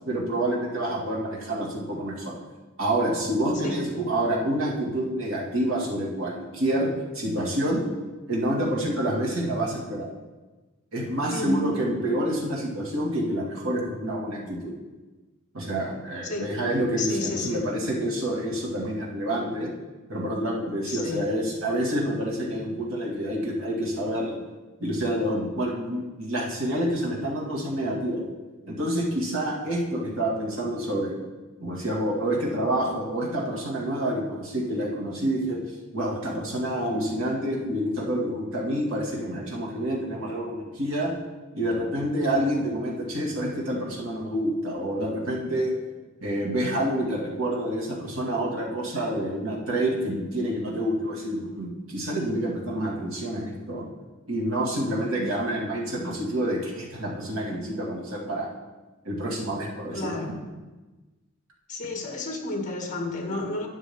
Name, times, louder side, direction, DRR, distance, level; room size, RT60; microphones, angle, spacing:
voice 1, 0.1-2.4 2.8-7.9 8.3-10.1 10.9-14.7 15.5-19.7 20.1-24.4 24.8-28.3 28.7-31.2 31.6-35.6 35.9-41.1 41.5-45.7 46.2-53.9 54.3-58.5 59.0-60.1, right 1 dB, 80° right, -2 dB, 2.3 m, -28 dB
voice 2, 11.3-11.7 16.2-16.5 17.0-17.6 20.9-21.2 55.2-55.3 59.9-60.3 61.7-63.7, left 2 dB, 40° left, 1 dB, 1.9 m, -31 dB
12.0 x 8.9 x 3.7 m, 1.2 s
head